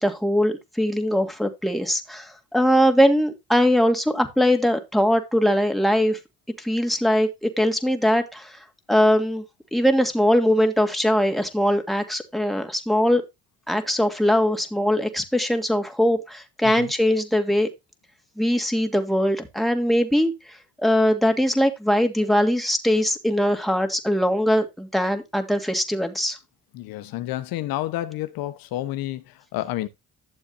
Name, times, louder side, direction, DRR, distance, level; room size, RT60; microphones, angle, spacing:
voice 1, 0.0-6.2 6.6-8.6 8.9-9.4 9.7-13.2 13.7-17.7 18.4-20.3 20.8-26.4, equal, ahead, 2.6 m, -21 dB
voice 2, 26.7-29.9, left 14 dB, 80° left, 1.3 m, -30 dB
12.5 x 7.1 x 2.8 m
supercardioid pair, 70°, 35 cm